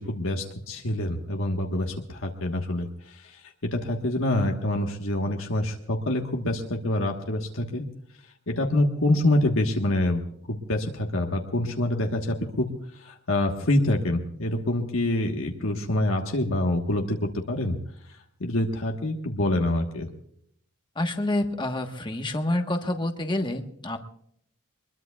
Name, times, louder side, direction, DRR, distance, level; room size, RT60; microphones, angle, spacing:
voice 1, 0.1-7.9 8.5-10.2 10.5-12.7 13.0-17.8 18.4-20.1, left 1 dB, 65° left, 2 dB, 1.4 m, -26 dB
voice 2, 20.9-24.0, left 1 dB, 20° left, 5 dB, 1.2 m, -28 dB
23.5 x 21.5 x 2.4 m, 0.67 s
head